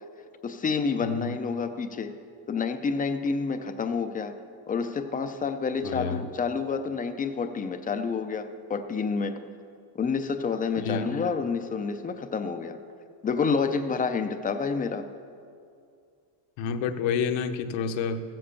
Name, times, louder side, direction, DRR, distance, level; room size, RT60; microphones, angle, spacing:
voice 1, 0.4-2.1 2.5-4.3 4.7-9.4 9.9-12.8 13.2-15.1, left 5 dB, 20° left, 9 dB, 0.3 m, -29 dB
voice 2, 5.8-6.2 10.8-11.2 16.6-18.2, left 6 dB, 65° left, 8 dB, 0.9 m, -29 dB
14.5 x 7.6 x 6.9 m, 2.4 s
cardioid pair, 135°, 50 cm